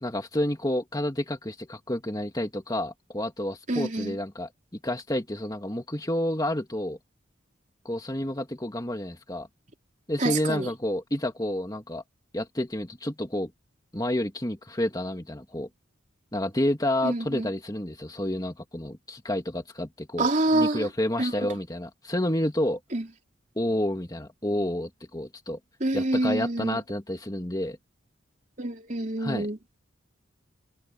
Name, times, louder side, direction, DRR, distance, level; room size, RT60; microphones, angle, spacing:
voice 1, 0.0-7.0 7.8-9.5 10.1-12.0 12.3-13.5 13.9-15.7 16.3-22.8 23.6-25.6 25.9-27.8 29.2-29.5, left 1 dB, 20° left, 2.1 m, -30 dB
voice 2, 3.7-4.1 10.2-10.7 17.0-17.5 20.2-20.9 21.2-21.3 22.9-23.0 25.8-26.8 28.6-29.6, right 2 dB, 40° right, 3.5 m, -26 dB
head